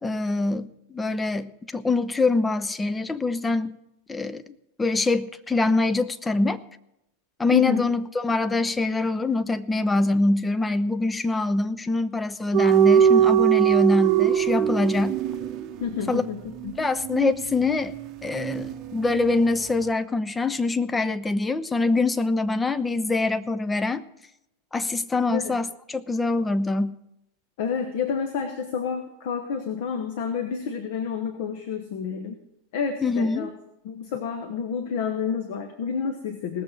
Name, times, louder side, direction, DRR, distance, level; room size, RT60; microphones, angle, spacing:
voice 1, 0.0-3.8 4.1-4.4 4.8-6.6 7.4-15.2 16.1-16.2 16.8-17.9 18.2-24.0 24.7-26.9 33.0-33.5, left 3 dB, 10° left, 12 dB, 0.7 m, -24 dB
voice 2, 7.5-7.9 15.8-16.8 25.3-25.6 27.6-32.4 32.7-33.5 33.8-36.6, left 6 dB, 50° left, 6 dB, 1.4 m, -29 dB
sound 1, 12.5-19.3 19.6-19.8, right 10 dB, 35° right, 0.9 m, -22 dB
18.5 x 7.2 x 6.3 m, 0.85 s
figure-of-eight pair, 90°, 0 cm